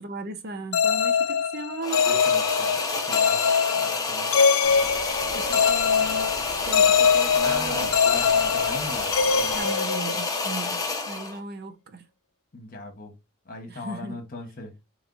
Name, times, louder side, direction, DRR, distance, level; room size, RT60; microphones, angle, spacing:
voice 1, 0.0-2.4 5.3-6.3 6.6-8.2 9.5-12.0 13.7-14.2, right 3 dB, 50° right, 0.7 m, -37 dB
sound 1, 0.7-10.5, left 6 dB, 65° left, 0.4 m, -23 dB
sound 2, 1.8-11.4, left 3 dB, 15° left, 0.8 m, -29 dB
voice 2, 2.1-3.4 3.7-4.3 7.4-9.1 9.4-9.7 12.5-13.1 13.4-14.7, left 2 dB, 45° left, 1.2 m, -38 dB
independent pink noise delay, 4.6-9.6, right 1 dB, 25° right, 1.7 m, -41 dB
3.5 x 3.1 x 3.9 m
head